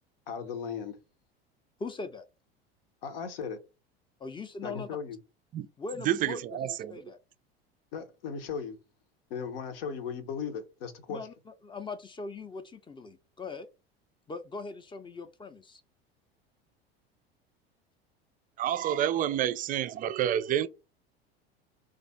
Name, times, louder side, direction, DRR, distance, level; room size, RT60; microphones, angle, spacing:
voice 1, 0.3-1.0 3.0-3.6 4.6-5.2 7.9-8.8 9.3-11.2, left 6 dB, 65° left, 0.9 m, -37 dB
voice 2, 1.8-2.2 4.2-4.9 5.8-7.2 11.1-13.7 14.3-15.8, left 3 dB, 15° left, 0.6 m, -40 dB
voice 3, 6.0-7.0 18.6-20.7, right 11 dB, 25° right, 0.4 m, -29 dB
3.3 x 2.5 x 4.0 m
figure-of-eight pair, 75°, 31 cm